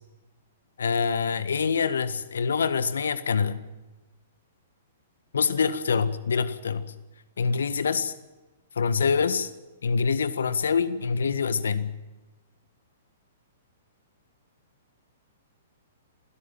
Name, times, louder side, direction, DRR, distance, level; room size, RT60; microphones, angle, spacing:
voice 1, 0.8-3.6 5.3-6.9 7.4-8.1 8.7-9.5 9.8-11.9, left 5 dB, 65° left, 14 dB, 1.6 m, -25 dB
27.0 x 16.5 x 9.1 m, 1.1 s
figure-of-eight pair, 110°, 0 cm